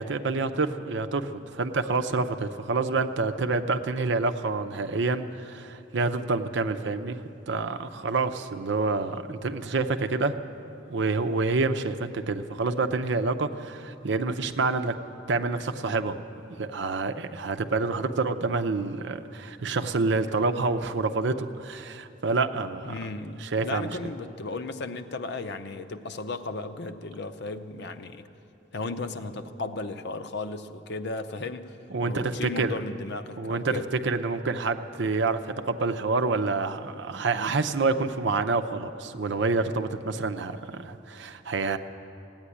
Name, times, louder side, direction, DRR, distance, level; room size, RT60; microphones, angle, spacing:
voice 1, 0.0-10.4 10.9-14.9 15.3-16.2 16.6-23.0 23.4-24.0 31.9-32.8 33.4-33.7 34.0-41.8, right 3 dB, 65° right, 8 dB, 0.7 m, -27 dB
voice 2, 22.8-28.2 28.7-31.8 32.0-33.9, left 3 dB, 60° left, 9 dB, 0.7 m, -35 dB
16.0 x 8.9 x 9.9 m, 2.8 s
head